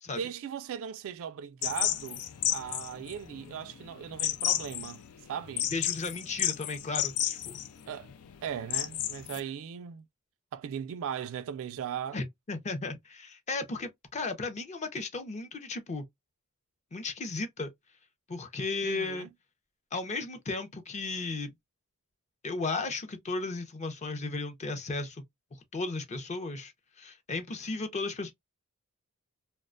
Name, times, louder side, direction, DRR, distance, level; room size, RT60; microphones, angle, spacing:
voice 1, 0.1-5.7 7.9-8.1 8.4-10.1 10.5-12.2 18.8-19.3, right 8 dB, 65° right, 0.3 m, -38 dB
sound 1, 1.6-9.4, left 12 dB, 85° left, 0.4 m, -32 dB
voice 2, 5.7-7.6 12.1-16.0 16.9-17.7 18.3-19.3 19.9-21.5 22.4-25.2 25.7-26.7 27.0-28.3, left 3 dB, 30° left, 0.5 m, -35 dB
2.4 x 2.1 x 2.4 m
head